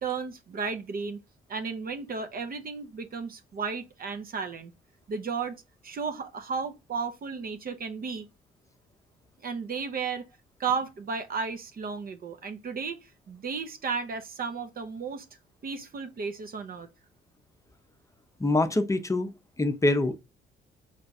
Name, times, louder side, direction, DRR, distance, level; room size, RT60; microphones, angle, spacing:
voice 1, 0.0-1.2 1.5-4.7 5.1-5.6 5.8-8.3 9.4-10.2 10.6-15.2 15.6-16.9, right 5 dB, 45° right, 0.7 m, -34 dB
voice 2, 18.4-20.2, left 2 dB, 15° left, 0.6 m, -25 dB
4.5 x 3.3 x 2.6 m
cardioid pair, 90°, 20 cm